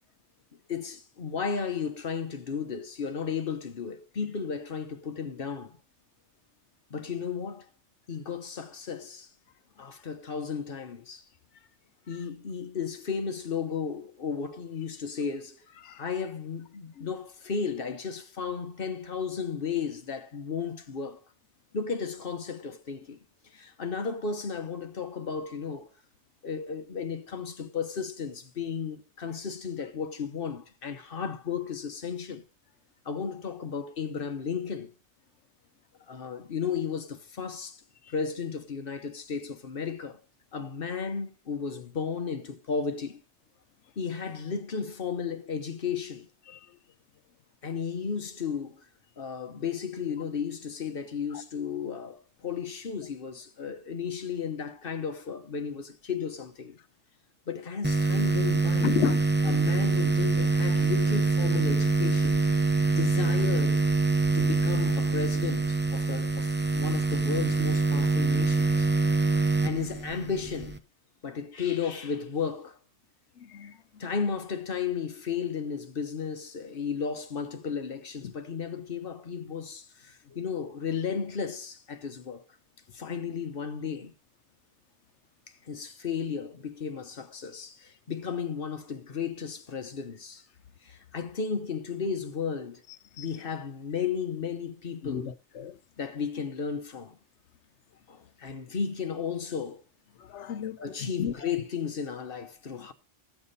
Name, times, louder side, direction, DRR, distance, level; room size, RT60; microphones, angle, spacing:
voice 1, 0.7-5.8 6.9-7.7 8.1-9.3 9.8-11.2 12.1-15.6 16.0-21.2 21.7-23.2 23.5-25.9 26.4-32.4 33.0-34.9 36.1-37.8 38.1-40.2 40.5-43.2 44.0-46.3 47.6-48.9 49.2-56.8 57.5-59.0 59.4-62.5 62.9-63.8 64.3-68.9 69.6-70.8 71.2-72.8 74.0-82.4 82.9-84.1 85.6-90.4 90.8-92.8 93.2-95.3 96.0-97.2 98.1-99.8 100.8-102.9, left 6 dB, 55° left, 1.2 m, -34 dB
sound 1, 57.8-70.8, right 3 dB, 10° right, 0.7 m, -25 dB
voice 2, 58.8-59.2 73.4-73.8 93.2-93.3 95.0-95.7 100.3-101.3, left 9 dB, 85° left, 1.1 m, -32 dB
15.0 x 7.2 x 4.0 m
omnidirectional pair, 1.2 m